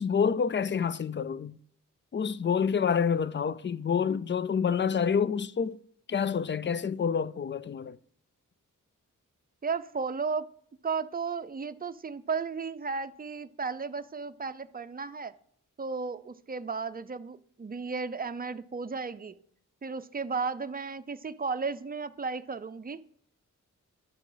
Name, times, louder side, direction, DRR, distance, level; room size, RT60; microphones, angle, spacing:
voice 1, 0.0-1.6 2.1-5.8 6.1-8.0, left 6 dB, 35° left, 0.4 m, -28 dB
voice 2, 9.6-10.5 10.8-15.3 15.8-19.3 19.8-23.0, right 5 dB, 30° right, 0.5 m, -34 dB
11.5 x 6.1 x 3.9 m
cardioid pair, 65°, 32 cm